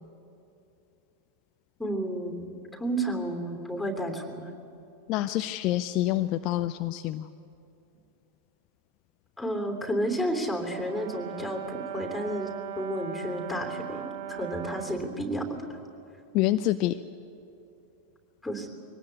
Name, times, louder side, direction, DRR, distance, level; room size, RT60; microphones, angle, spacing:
voice 1, 1.8-4.4 9.4-12.5 12.7-15.7 18.4-18.7, right 1 dB, 5° left, 4 dB, 3.2 m, -31 dB
voice 2, 5.1-7.3 16.3-17.0, left 14 dB, 40° left, 10 dB, 0.5 m, -27 dB
Brass instrument, 10.7-15.1, right 10 dB, 50° right, 1.0 m, -39 dB
23.5 x 19.0 x 8.2 m, 2.7 s
figure-of-eight pair, 90°, 0 cm